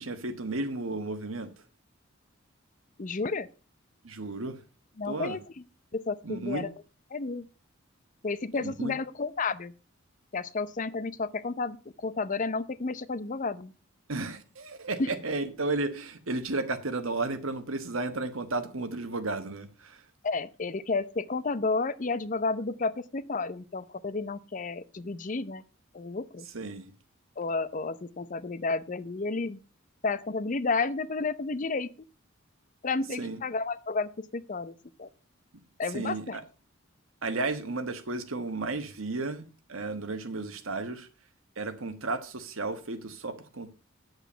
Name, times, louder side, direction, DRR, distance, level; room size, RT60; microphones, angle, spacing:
voice 1, 0.0-1.5 4.0-4.6 5.1-5.4 6.2-6.7 8.6-8.9 14.1-20.0 26.5-26.9 33.2-33.4 35.9-36.4 37.2-41.1 41.6-43.7, right 3 dB, 90° right, 1.4 m, -33 dB
voice 2, 3.0-3.5 5.0-5.6 5.9-6.7 7.1-7.5 8.2-9.7 10.3-13.7 15.0-15.1 20.2-25.6 25.9-26.5 27.4-29.6 30.0-31.9 32.8-35.1 35.8-36.4, left 3 dB, 40° left, 0.6 m, -31 dB
9.2 x 8.0 x 5.5 m
head